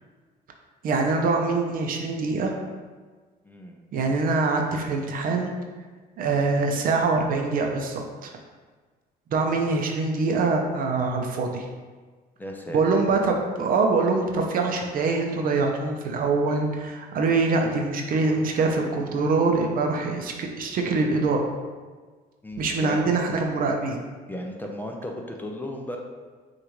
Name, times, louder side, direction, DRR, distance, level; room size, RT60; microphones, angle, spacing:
voice 1, 0.8-2.5 3.9-5.5 6.2-8.3 9.3-11.6 12.7-21.5 22.6-24.0, right 3 dB, 55° right, 2 dB, 0.6 m, -24 dB
voice 2, 3.4-3.8 12.4-12.8 22.4-23.0 24.3-26.0, left 1 dB, 10° left, 1 dB, 0.5 m, -35 dB
6.2 x 2.5 x 3.1 m, 1.4 s
cardioid pair, 110°, 17 cm